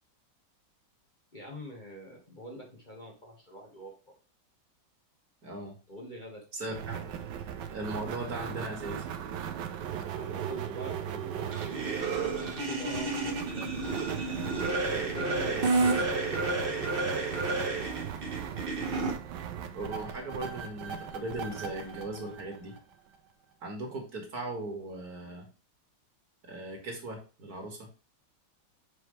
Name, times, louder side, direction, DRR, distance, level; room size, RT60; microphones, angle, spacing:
voice 1, 1.3-4.2 5.9-6.5 10.2-11.7 12.1-13.9 14.7-16.8, equal, 25° left, -1 dB, 1.7 m, -45 dB
voice 2, 5.4-5.7 6.5-7.2 7.7-9.1 19.7-22.7 23.6-25.5 26.4-27.9, right 2 dB, 55° right, 2 dB, 2.3 m, -38 dB
sound 1, 6.7-23.2, right 9 dB, 75° right, 1.4 m, -39 dB
sound 2, 11.5-19.1, right 3 dB, 35° right, 1.3 m, -30 dB
6.5 x 4.8 x 3.2 m, 0.34 s
omnidirectional pair, 1.9 m